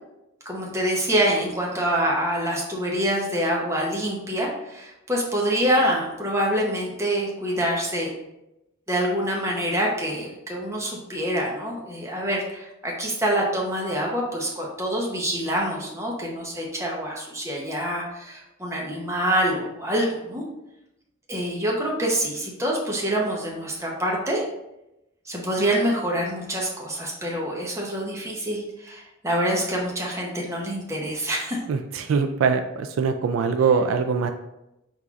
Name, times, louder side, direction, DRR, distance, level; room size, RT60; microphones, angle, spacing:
voice 1, 0.4-8.1 8.9-20.4 21.3-24.4 25.2-31.6, right 1 dB, 15° right, -2 dB, 0.8 m, -26 dB
voice 2, 31.7-34.3, right 5 dB, 75° right, 9 dB, 0.3 m, -22 dB
4.2 x 3.8 x 2.4 m, 0.89 s
head